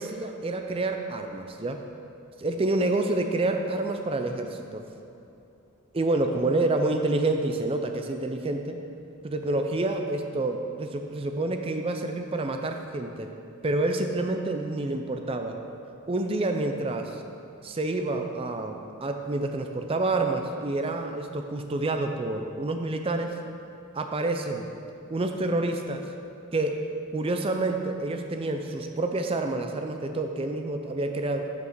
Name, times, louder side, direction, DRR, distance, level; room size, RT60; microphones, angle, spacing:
voice 1, 0.0-1.8 2.4-4.8 5.9-8.8 9.2-13.3 13.6-15.6 16.1-17.2 17.6-23.3 23.9-24.7 25.1-26.1 26.5-26.8 27.1-31.4, right 2 dB, 25° right, 5 dB, 0.4 m, -28 dB
7.7 x 5.7 x 6.0 m, 2.7 s
head